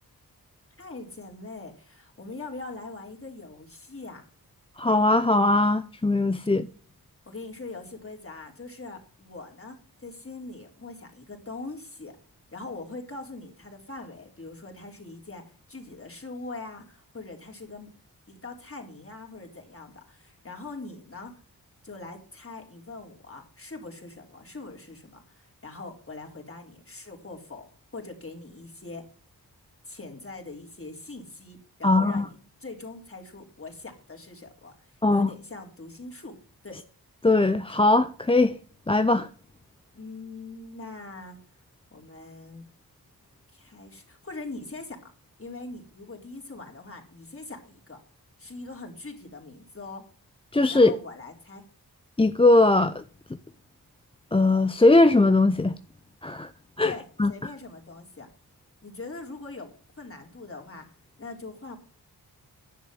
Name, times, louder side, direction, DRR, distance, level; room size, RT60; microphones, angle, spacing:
voice 1, 0.8-4.2 7.3-12.2 12.5-15.4 15.7-17.9 18.3-21.3 21.8-27.7 27.9-29.0 29.9-32.3 32.6-36.3 36.6-36.8 40.0-41.4 41.9-42.6 43.5-45.0 45.4-48.0 48.4-50.0 50.7-51.6 56.8-58.3 58.8-60.8 61.2-61.8, left 3 dB, 35° left, 3.9 m, -42 dB
voice 2, 4.8-6.7 31.8-32.3 35.0-35.3 37.2-38.5 38.9-39.3 50.5-51.0 52.2-53.0 54.3-55.7 56.2-56.5 56.8-56.9 57.2-57.3, left 2 dB, 15° left, 0.6 m, -20 dB
10.5 x 7.4 x 7.6 m
cardioid pair, 50°, 40 cm